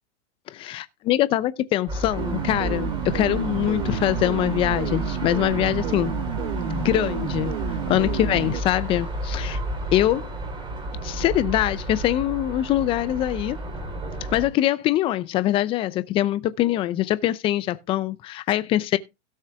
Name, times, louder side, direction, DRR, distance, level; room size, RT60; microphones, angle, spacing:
voice 1, 0.5-6.1 6.6-7.5 7.9-9.6 9.9-10.3 11.0-13.6 14.3-19.0, left 13 dB, 15° left, 0.5 m, -23 dB
sound 1, 1.9-14.5, right 1 dB, 15° right, 2.9 m, -31 dB
sound 2, 2.2-8.6, right 12 dB, 55° right, 0.8 m, -31 dB
16.5 x 6.5 x 3.4 m
hypercardioid pair, 140°, 35 cm